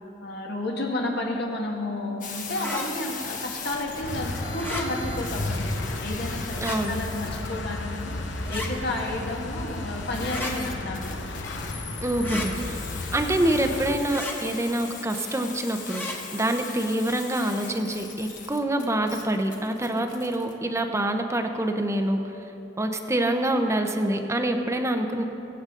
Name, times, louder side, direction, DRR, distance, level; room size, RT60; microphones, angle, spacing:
voice 1, 0.2-8.2 8.5-11.0, left 1 dB, 60° left, 0 dB, 1.8 m, -31 dB
sound 1, 2.2-20.5, left 4 dB, 45° left, 1.3 m, -40 dB
sound 2, 2.6-2.9 4.5-4.9 6.5-6.8 8.4-8.7 10.2-10.5 12.2-12.5 14.1-14.4 15.9-16.2, left 1 dB, 10° left, 1.4 m, -33 dB
sound 3, 4.0-14.0, left 2 dB, 80° left, 0.9 m, -33 dB
voice 2, 6.6-7.0 12.0-12.8 13.1-16.0 16.3-22.2 22.8-25.2, right 1 dB, 15° right, 5 dB, 0.7 m, -26 dB
22.5 x 8.0 x 3.8 m, 3.0 s
head